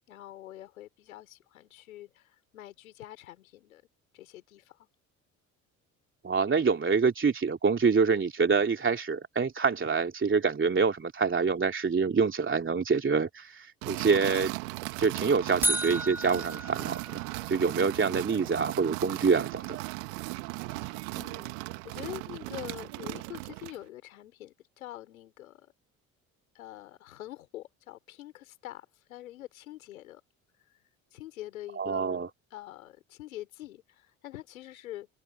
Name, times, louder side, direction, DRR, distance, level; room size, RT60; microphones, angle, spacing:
voice 1, 0.1-3.8 4.1-4.9 20.7-25.7 26.5-30.2 31.1-35.1, left 14 dB, 85° left, 5.0 m, -45 dB
voice 2, 6.2-14.5 15.0-19.8 31.8-32.3, right 5 dB, 30° right, 2.8 m, -26 dB
sound 1, 13.8-23.8, right 27 dB, 75° right, 2.1 m, -37 dB
sound 2, 15.6-17.7, right 1 dB, 5° right, 2.5 m, -32 dB
hypercardioid pair, 55°, 41 cm